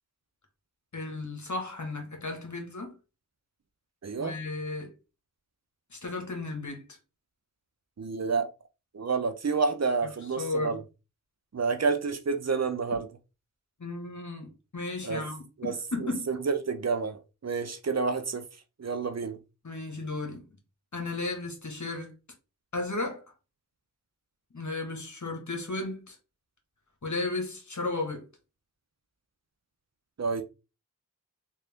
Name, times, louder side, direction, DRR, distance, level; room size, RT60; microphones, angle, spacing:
voice 1, 0.9-2.9 4.2-4.9 5.9-7.0 10.0-10.1 10.4-10.8 13.8-16.3 19.6-20.4 20.9-22.2 22.7-23.2 24.5-26.2 27.0-28.2, left 2 dB, 60° left, 1.3 m, -34 dB
voice 2, 4.0-4.3 8.0-8.5 8.9-10.8 11.5-13.1 15.0-15.2 15.6-18.4 18.8-19.4 30.2-30.4, right 4 dB, 55° right, 0.6 m, -29 dB
3.3 x 2.6 x 3.4 m
wide cardioid pair, 45°, 33 cm